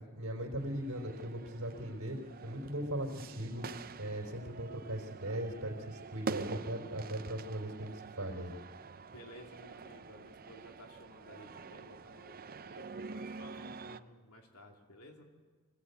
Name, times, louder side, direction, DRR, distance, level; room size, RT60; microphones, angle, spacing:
voice 1, 0.2-2.2 2.4-3.7 4.0-8.5, right 1 dB, 65° right, 0 dB, 3.8 m, -39 dB
sound 1, 0.6-14.0, right 4 dB, 40° right, 0.6 m, -46 dB
voice 2, 9.1-15.2, left 1 dB, 85° left, 3 dB, 2.6 m, -55 dB
25.0 x 17.0 x 8.2 m, 1.5 s
head